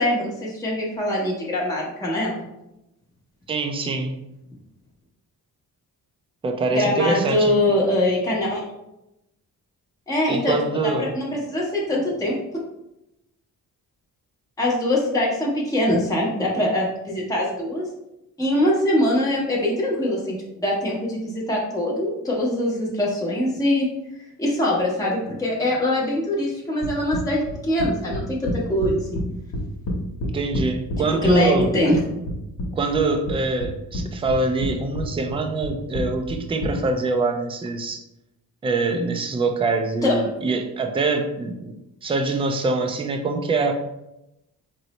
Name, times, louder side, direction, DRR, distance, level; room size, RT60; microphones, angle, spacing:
voice 1, 0.0-2.4 6.7-8.6 10.1-12.3 14.6-17.9 18.4-23.9 24.4-29.2 31.2-32.0 40.0-40.2, left 1 dB, 10° left, -5 dB, 0.8 m, -23 dB
voice 2, 3.5-4.1 6.4-7.5 10.3-11.1 30.2-31.7 32.7-38.0 38.6-41.8 42.0-43.7, right 3 dB, 15° right, 5 dB, 0.3 m, -24 dB
sound 1, 26.8-29.2 29.5-31.3 31.6-32.7 32.9-34.0 34.3-34.7 35.0-36.7, left 1 dB, 65° left, 0.9 m, -28 dB
3.9 x 2.0 x 2.9 m, 0.88 s
cardioid pair, 95°, 37 cm